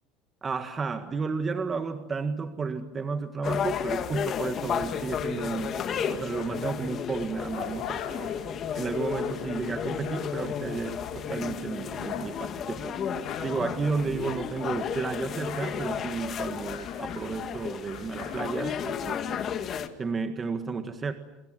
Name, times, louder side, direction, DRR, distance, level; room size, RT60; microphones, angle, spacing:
voice 1, 0.4-8.3 8.7-13.0 13.4-19.4 20.0-21.1, right 4 dB, 20° right, 7 dB, 1.7 m, -32 dB
sound 1, 3.4-19.9, left 8 dB, 35° left, 2.1 m, -33 dB
sound 2, 5.0-6.8 7.2-14.8 15.1-19.3, left 9 dB, 55° left, 7.4 m, -44 dB
26.5 x 26.5 x 7.8 m, 0.92 s
supercardioid pair, 140°, 0 cm